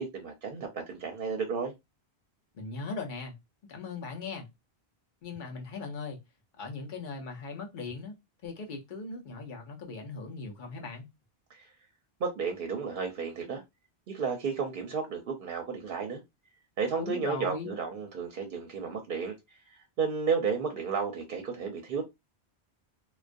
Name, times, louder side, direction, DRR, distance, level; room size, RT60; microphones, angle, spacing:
voice 1, 0.0-1.7 11.5-11.6 12.2-13.6 14.1-16.2 16.8-19.3 20.0-22.0, right 5 dB, 60° right, 0.7 m, -32 dB
voice 2, 2.5-3.3 3.7-4.5 5.2-6.2 6.6-8.1 8.4-11.1 17.0-17.8, left 4 dB, 55° left, 0.8 m, -39 dB
2.3 x 2.2 x 2.5 m
omnidirectional pair, 1.1 m